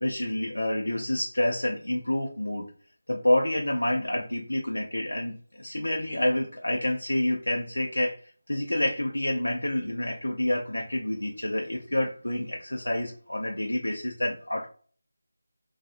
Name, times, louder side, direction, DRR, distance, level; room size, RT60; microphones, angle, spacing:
voice 1, 0.0-2.7 3.1-8.2 8.5-14.7, left 1 dB, 85° left, 0 dB, 0.5 m, -28 dB
2.8 x 2.3 x 2.4 m, 0.43 s
figure-of-eight pair, 165°, 0 cm